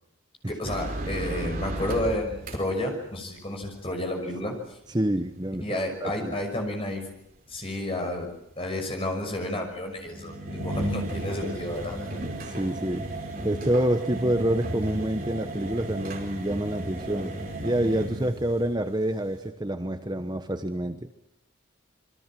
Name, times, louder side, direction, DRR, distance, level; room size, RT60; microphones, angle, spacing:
voice 1, 0.5-4.6 5.6-7.0 7.5-8.3 8.6-12.1 12.5-12.6, left 1 dB, 25° left, 3 dB, 6.1 m, -31 dB
sound 1, 0.6-2.8 6.5-6.6 8.5-8.6 10.0-18.8 19.1-19.2, right 1 dB, 45° right, 4.9 m, -34 dB
voice 2, 4.9-6.4 12.4-13.1 13.4-21.1, right 1 dB, 20° right, 8 dB, 1.0 m, -27 dB
27.5 x 23.0 x 7.6 m, 0.77 s
head